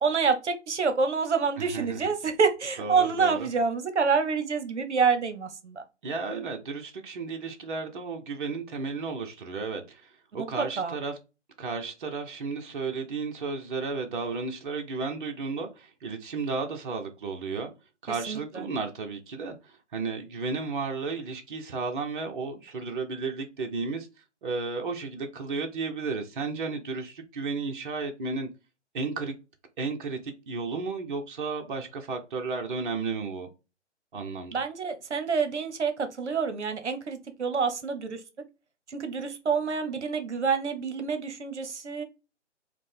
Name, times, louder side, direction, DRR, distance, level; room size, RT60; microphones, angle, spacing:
voice 1, 0.0-5.8 10.4-11.0 18.3-18.6 34.5-38.2 38.9-42.0, right 5 dB, 70° right, 0.9 m, -27 dB
voice 2, 1.6-2.0 2.8-3.5 6.0-11.1 11.6-17.7 18.0-24.1 24.4-28.5 28.9-29.3 29.8-33.5 34.1-34.6, right 4 dB, 45° right, 0.8 m, -33 dB
4.9 x 2.2 x 3.4 m
figure-of-eight pair, 140°, 36 cm